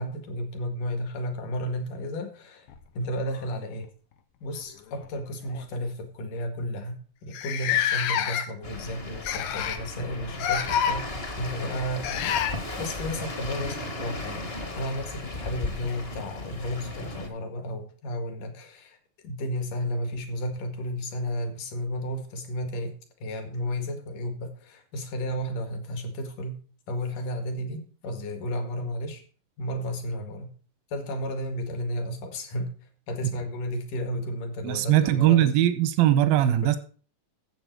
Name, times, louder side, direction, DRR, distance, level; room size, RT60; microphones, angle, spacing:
voice 1, 0.0-2.7 2.9-3.9 4.4-12.4 12.8-19.0 19.2-26.6 26.9-29.2 29.6-30.5 30.9-32.7 33.1-35.5 36.4-36.7, equal, 65° left, 3.4 m, -33 dB
sound 1, 2.7-3.9 4.9-5.1 5.5-5.6 6.4-6.5 6.6-6.7 7.3-8.7 9.2-9.9 10.4-11.0 12.0-12.6 14.7-14.8 15.8-15.9, left 9 dB, 85° left, 2.9 m, -27 dB
sound 2, 8.6-17.3, left 2 dB, 30° left, 1.0 m, -36 dB
voice 2, 34.6-36.8, right 12 dB, 90° right, 2.6 m, -20 dB
14.5 x 7.3 x 4.6 m
omnidirectional pair, 4.1 m